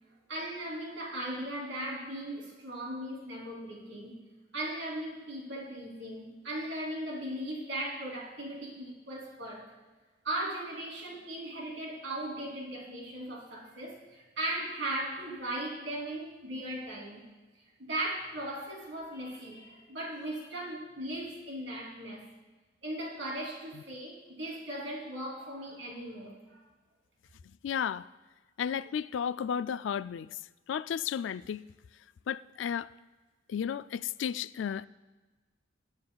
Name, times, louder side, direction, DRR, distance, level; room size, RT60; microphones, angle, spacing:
voice 1, 0.3-4.2 4.5-9.7 10.2-17.2 17.8-22.2 22.8-26.6, right 1 dB, 80° right, 3.1 m, -38 dB
voice 2, 27.4-28.1 28.6-30.4 30.7-31.7 32.3-32.9 33.5-34.9, left 8 dB, 75° left, 0.3 m, -33 dB
22.0 x 9.6 x 2.3 m
head